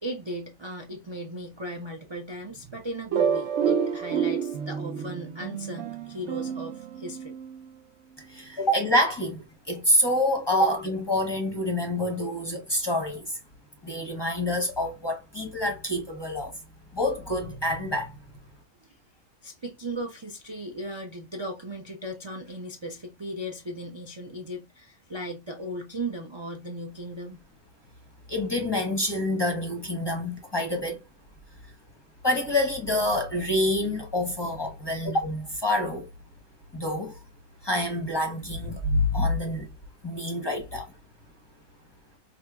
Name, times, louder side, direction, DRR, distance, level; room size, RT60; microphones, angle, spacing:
voice 1, 0.0-7.3 18.8-19.0 19.4-27.4, right 1 dB, 45° right, 0.3 m, -37 dB
sound 1, 3.1-7.7, right 7 dB, 65° right, 0.8 m, -29 dB
voice 2, 8.2-13.4 13.8-16.5 16.9-18.2 28.3-31.0 32.2-36.1 36.7-37.2 37.6-39.7 40.0-40.9, left 1 dB, 25° left, 0.7 m, -27 dB
4.6 x 2.7 x 2.3 m
omnidirectional pair, 1.6 m